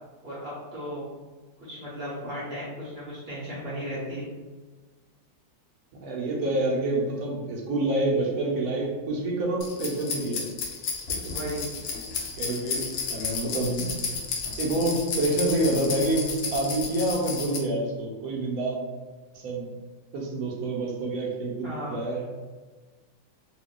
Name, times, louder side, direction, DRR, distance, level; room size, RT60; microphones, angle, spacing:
voice 1, 0.2-1.1 1.6-4.3 11.3-11.7 21.6-22.1, equal, 50° right, -8 dB, 0.8 m, -35 dB
voice 2, 6.0-10.5 11.1-11.3 12.3-14.0 14.6-18.8 19.3-19.7 20.1-22.3, right 2 dB, 65° right, -2 dB, 1.0 m, -27 dB
sound 1, 9.6-17.6, left 5 dB, 70° left, 0.7 m, -32 dB
3.0 x 2.2 x 3.7 m, 1.3 s
omnidirectional pair, 2.0 m